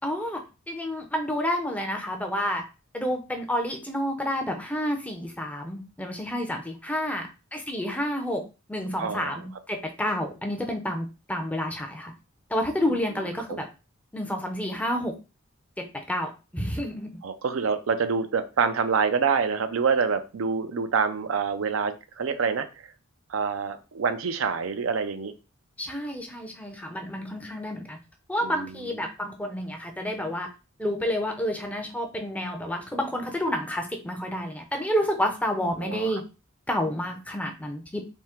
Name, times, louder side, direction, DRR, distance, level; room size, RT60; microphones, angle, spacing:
voice 1, 0.0-0.4 0.7-2.6 2.9-12.1 12.5-13.7 14.1-15.1 15.8-17.1 25.8-28.0 28.3-30.5 30.8-36.2 36.7-38.0, equal, 5° left, 4 dB, 0.5 m, -29 dB
voice 2, 9.0-9.4 12.9-13.0 13.5-13.6 17.2-22.9 23.3-25.3 28.4-28.7 35.8-36.2, right 5 dB, 70° right, 9 dB, 0.5 m, -26 dB
3.6 x 2.7 x 4.3 m, 0.31 s
head